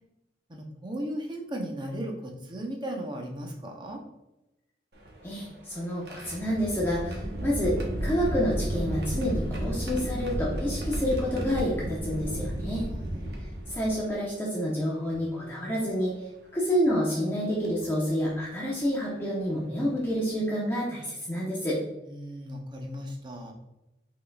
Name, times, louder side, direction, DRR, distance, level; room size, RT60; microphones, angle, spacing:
voice 1, 0.5-4.0 12.8-13.2 22.0-23.5, equal, 25° right, 1 dB, 0.7 m, -36 dB
sound 1, 4.9-14.2 15.1-15.2 16.7-16.9 17.6-17.8 19.4-19.5 20.0-20.2, right 1 dB, 65° right, 0.9 m, -33 dB
voice 2, 5.2-12.9 13.7-16.1 16.5-21.8, equal, 15° left, -6 dB, 0.8 m, -28 dB
5.4 x 4.0 x 2.3 m, 0.94 s
head